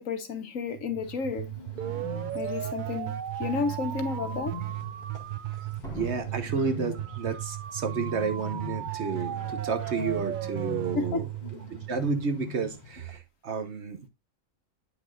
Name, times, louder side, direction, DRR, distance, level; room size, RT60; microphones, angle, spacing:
voice 1, 0.0-1.5 2.3-3.1 3.4-4.5 10.9-11.2, left 5 dB, 75° left, 1.5 m, -31 dB
sound 1, 0.8-12.6, right 12 dB, 80° right, 0.4 m, -35 dB
Bird, 1.0-13.2, left 6 dB, 35° left, 2.1 m, -44 dB
Slam, 2.7-2.8 3.4-3.8 5.8-7.7 8.0-8.1, equal, ahead, 3.3 m, -47 dB
voice 2, 5.9-11.3 11.9-14.1, right 5 dB, 60° right, 1.2 m, -31 dB
8.7 x 5.9 x 2.5 m
omnidirectional pair, 1.4 m